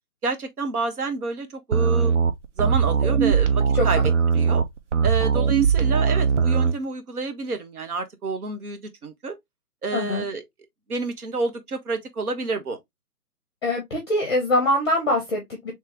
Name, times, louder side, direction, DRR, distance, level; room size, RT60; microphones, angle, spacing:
voice 1, 0.2-2.1 2.6-4.0 4.3-4.6 5.0-9.3 9.8-10.4 10.9-12.8, right 3 dB, 65° right, 1.2 m, -29 dB
sound 1, 1.7-6.8, right 6 dB, 50° right, 0.5 m, -20 dB
voice 2, 9.9-10.2 13.6-15.7, left 1 dB, 15° left, 0.7 m, -24 dB
3.3 x 2.9 x 3.3 m
hypercardioid pair, 155°, 47 cm